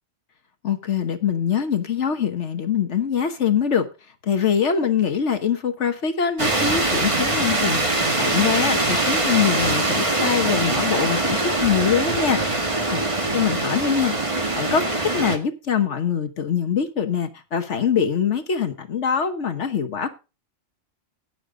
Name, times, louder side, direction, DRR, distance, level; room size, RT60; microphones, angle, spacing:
voice 1, 0.6-3.9 4.2-7.9 8.2-12.6 12.9-13.0 13.3-14.8 15.1-20.1, left 7 dB, 65° left, 1.4 m, -23 dB
sound 1, 6.4-15.4, right 2 dB, 25° right, 1.7 m, -23 dB
17.0 x 6.9 x 3.7 m
omnidirectional pair, 1.3 m